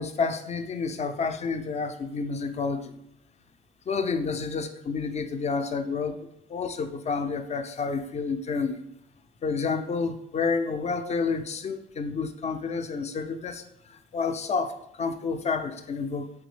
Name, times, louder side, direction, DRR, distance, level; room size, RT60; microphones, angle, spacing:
voice 1, 0.0-3.0 3.9-8.8 9.4-16.3, left 4 dB, 35° left, 9 dB, 0.4 m, -30 dB
3.4 x 2.9 x 3.1 m, 0.79 s
cardioid pair, 90°, 20 cm